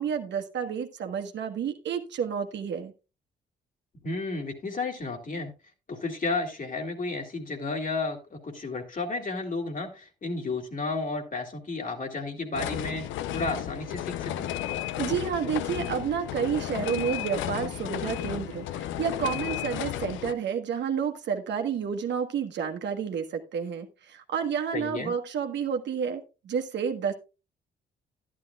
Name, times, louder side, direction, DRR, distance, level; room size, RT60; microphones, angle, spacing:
voice 1, 0.0-2.9 15.0-27.1, right 7 dB, 65° right, 5 dB, 1.3 m, -30 dB
voice 2, 4.0-5.5 5.9-13.1 13.3-14.5 24.7-25.1, left 3 dB, 40° left, 4 dB, 2.7 m, -32 dB
sound 1, 12.5-20.3, left 12 dB, 75° left, 0.6 m, -33 dB
11.5 x 11.5 x 2.3 m, 0.29 s
hypercardioid pair, 55°, 20 cm